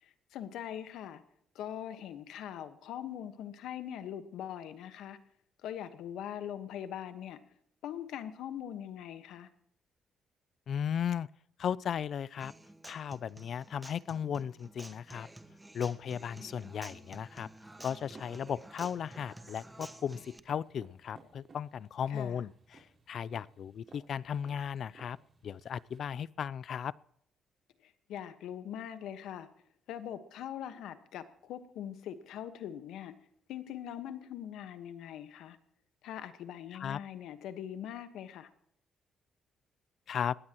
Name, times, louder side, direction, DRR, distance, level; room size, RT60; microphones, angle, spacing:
voice 1, 0.0-1.2 1.5-5.2 5.6-7.4 7.8-9.5 22.1-22.4 27.8-29.5 29.9-33.2 33.5-35.6 36.0-38.5, left 10 dB, 85° left, 11 dB, 1.3 m, -42 dB
voice 2, 10.7-11.3 11.6-12.5 12.9-15.3 15.7-17.5 17.8-25.2 25.4-26.9 36.7-37.0 40.1-40.4, left 8 dB, 60° left, 22 dB, 0.4 m, -36 dB
Human voice / Acoustic guitar, 12.4-20.4, right 1 dB, 10° right, 1.2 m, -51 dB
sound 1, 16.1-26.0, right 3 dB, 40° right, 5.6 m, -60 dB
21.0 x 16.5 x 3.0 m, 0.69 s
cardioid pair, 90°, 0 cm